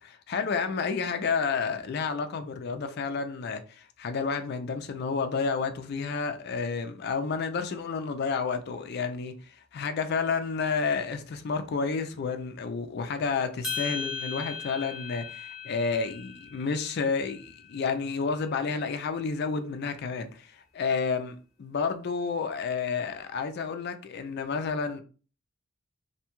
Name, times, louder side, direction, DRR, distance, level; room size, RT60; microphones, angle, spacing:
voice 1, 0.0-21.3 21.6-25.0, left 5 dB, 50° left, 0.3 m, -30 dB
sound 1, 13.6-18.1, left 4 dB, ahead, 0.7 m, -38 dB
2.6 x 2.2 x 2.9 m
head